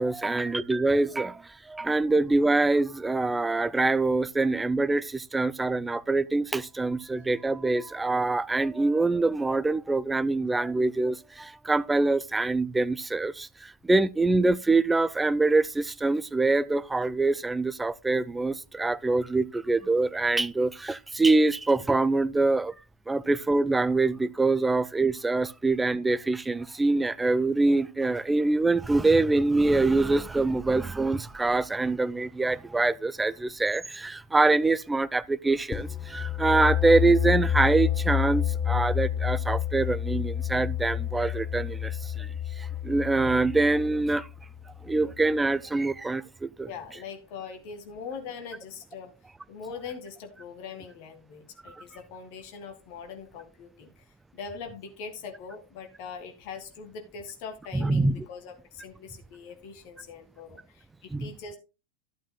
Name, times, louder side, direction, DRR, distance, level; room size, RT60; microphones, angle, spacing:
voice 1, 0.0-22.7 23.1-44.3 44.8-46.7 51.7-51.8 57.7-58.3 61.1-61.3, right 3 dB, 10° right, 0.4 m, -25 dB
sound 1, 35.7-45.3, left 10 dB, 20° left, 0.9 m, -29 dB
voice 2, 46.6-49.1 49.5-53.9 54.3-61.6, left 5 dB, 45° left, 1.9 m, -42 dB
12.0 x 8.6 x 2.2 m
figure-of-eight pair, 90°, 0 cm